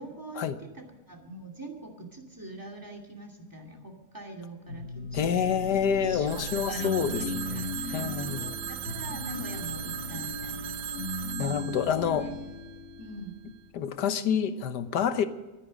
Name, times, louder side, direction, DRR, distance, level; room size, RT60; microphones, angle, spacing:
voice 1, 0.0-5.7 6.0-10.7 11.3-11.9 12.2-12.4 13.0-13.4, right 2 dB, 10° right, 2.6 m, -44 dB
sound 1, 4.7-13.4, left 2 dB, 60° left, 3.5 m, -37 dB
voice 2, 5.1-8.6 11.4-12.3 13.7-15.3, left 7 dB, 85° left, 1.6 m, -28 dB
Telephone, 6.3-13.1, right 10 dB, 85° right, 1.4 m, -38 dB
23.5 x 10.0 x 5.3 m
omnidirectional pair, 1.8 m